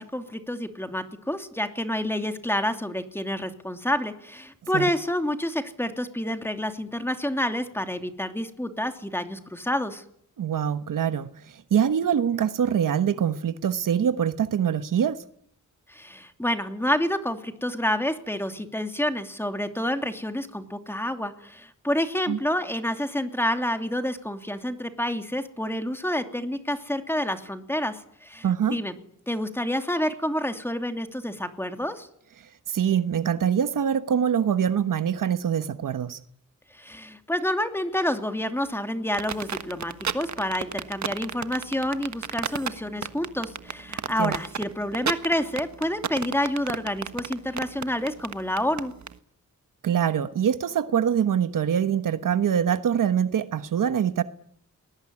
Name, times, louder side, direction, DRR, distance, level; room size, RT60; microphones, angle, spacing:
voice 1, 0.0-10.0 15.9-28.9 29.3-32.1 36.7-48.9, left 1 dB, 5° left, 2.8 m, -28 dB
voice 2, 10.4-11.3 11.7-15.2 22.3-22.4 28.4-28.8 32.7-36.2 44.2-44.3 49.8-54.2, right 8 dB, 90° right, 1.2 m, -24 dB
sound 1, 39.1-49.1, right 7 dB, 60° right, 1.4 m, -31 dB
28.5 x 21.0 x 9.8 m
wide cardioid pair, 110°, 31 cm